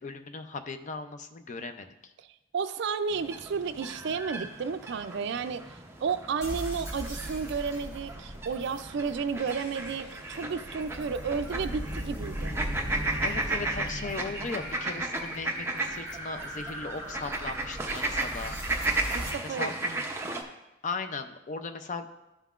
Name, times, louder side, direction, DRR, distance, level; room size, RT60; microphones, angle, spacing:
voice 1, 0.0-2.1 13.2-18.8 19.4-19.7 20.8-22.1, left 4 dB, 40° left, 8 dB, 0.5 m, -37 dB
voice 2, 2.5-5.6 6.0-12.6 19.1-20.1, right 5 dB, 60° right, 11 dB, 0.4 m, -32 dB
sound 1, 3.1-20.4, right 2 dB, 15° right, 0.6 m, -35 dB
sound 2, 6.4-19.3, right 1 dB, 15° left, 1.5 m, -39 dB
12.0 x 5.6 x 2.4 m, 0.95 s
head